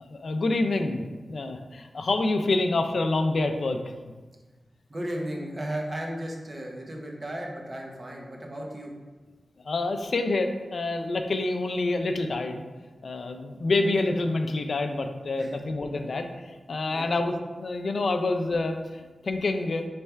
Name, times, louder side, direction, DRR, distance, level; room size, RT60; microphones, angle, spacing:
voice 1, 0.1-3.8 9.6-12.6 13.0-19.9, left 2 dB, 70° left, 6 dB, 0.4 m, -27 dB
voice 2, 4.9-8.9 15.4-15.6 16.9-17.1, right 1 dB, 40° right, 0 dB, 0.9 m, -35 dB
3.4 x 3.2 x 4.4 m, 1.3 s
cardioid pair, 55°, 0 cm